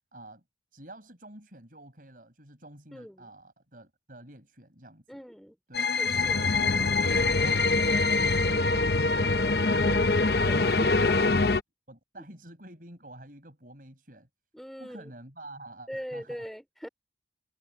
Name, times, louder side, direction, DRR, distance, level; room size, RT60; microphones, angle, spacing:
voice 1, 0.1-0.4 0.7-5.2 5.7-5.9 6.3-11.5 11.9-14.3 14.8-16.5, right 1 dB, 50° right, 5.4 m, -48 dB
voice 2, 2.9-3.3 5.1-5.6 5.9-6.4 9.8-11.2 14.5-15.1 15.9-16.9, equal, ahead, 2.8 m, -41 dB
sound 1, 5.7-11.6, left 3 dB, 55° left, 0.8 m, -24 dB
head